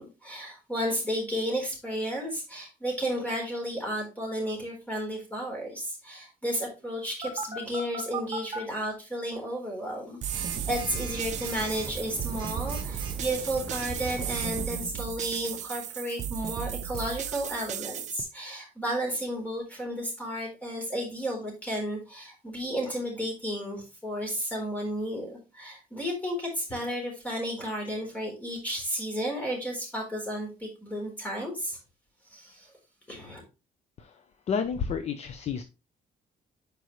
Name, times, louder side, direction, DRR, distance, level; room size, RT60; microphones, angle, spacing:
voice 1, 0.0-31.8 32.3-32.7 33.1-33.4, equal, 10° left, -1 dB, 3.9 m, -33 dB
Telephone, 7.2-8.6 10.3-14.6, right 4 dB, 30° right, 1.8 m, -37 dB
sound 1, 10.2-18.2, right 9 dB, 50° right, 0.6 m, -35 dB
voice 2, 34.0-35.6, left 6 dB, 45° left, 9 dB, 0.7 m, -31 dB
9.2 x 5.3 x 3.1 m, 0.30 s
cardioid pair, 155°, 15 cm